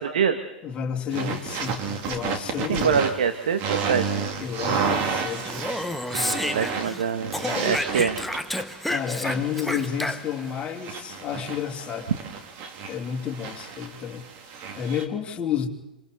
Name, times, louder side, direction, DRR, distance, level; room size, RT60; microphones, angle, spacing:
voice 1, 0.0-0.4 2.7-4.3 6.5-8.2, right 7 dB, 70° right, 8 dB, 1.4 m, -25 dB
voice 2, 0.6-3.0 4.4-5.7 6.1-6.6 7.4-7.8 8.9-12.1 12.9-15.7, left 8 dB, 25° left, 2 dB, 3.0 m, -31 dB
sound 1, 1.1-15.0, right 5 dB, 45° right, 2.9 m, -32 dB
Speech, 5.4-7.0 7.3-10.5, left 1 dB, ahead, 1.0 m, -30 dB
26.5 x 26.5 x 4.1 m, 0.96 s
figure-of-eight pair, 100°, 5 cm